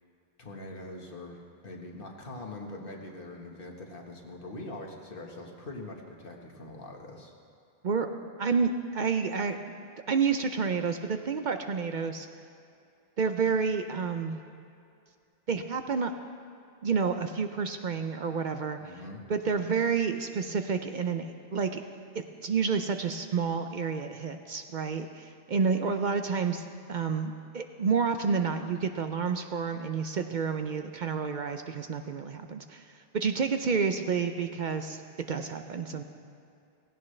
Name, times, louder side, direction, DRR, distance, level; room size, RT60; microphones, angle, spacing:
voice 1, 0.4-7.3 18.8-19.2, left 2 dB, 60° left, 1 dB, 1.7 m, -43 dB
voice 2, 8.4-9.8 10.1-12.3 13.2-14.4 15.5-16.1 16.8-18.9 19.3-21.8 22.1-36.0, right 5 dB, 55° right, 7 dB, 0.7 m, -29 dB
16.5 x 16.0 x 3.3 m, 2.5 s
omnidirectional pair, 1.0 m